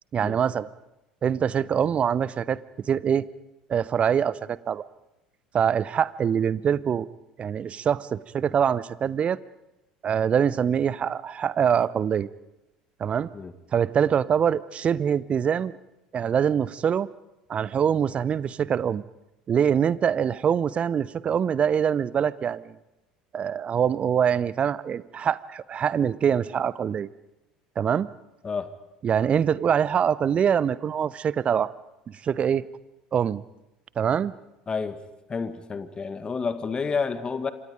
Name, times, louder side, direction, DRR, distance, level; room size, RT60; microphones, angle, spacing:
voice 1, 0.1-0.7 1.2-2.6 2.9-3.3 3.7-4.8 5.5-7.1 7.4-9.4 10.0-12.3 13.0-13.3 13.7-15.7 16.1-17.1 17.5-19.0 19.5-22.7 23.3-27.1 27.8-28.1 29.0-31.7 32.1-32.6 33.1-33.4 34.0-34.3, right 8 dB, 35° right, 20 dB, 0.8 m, -24 dB
voice 2, 34.7-35.0 35.3-37.5, left 5 dB, 25° left, 11 dB, 1.8 m, -29 dB
27.5 x 26.0 x 5.2 m, 0.95 s
figure-of-eight pair, 65°, 4 cm